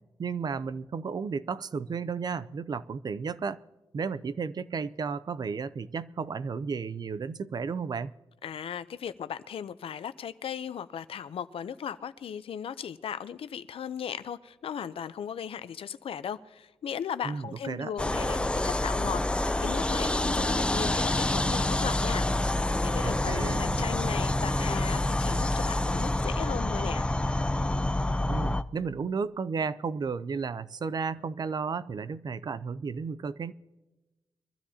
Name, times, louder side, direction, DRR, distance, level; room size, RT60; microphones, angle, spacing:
voice 1, 0.2-3.6 3.9-8.1 17.2-17.9 23.0-23.8 28.3-33.5, right 5 dB, 45° right, 16 dB, 0.5 m, -33 dB
voice 2, 8.4-22.3 22.8-27.0, left 8 dB, 75° left, 14 dB, 0.6 m, -37 dB
sound 1, 18.0-28.6, left 1 dB, 10° left, 0.4 m, -27 dB
23.5 x 13.0 x 2.8 m, 1.1 s
wide cardioid pair, 130°, 10 cm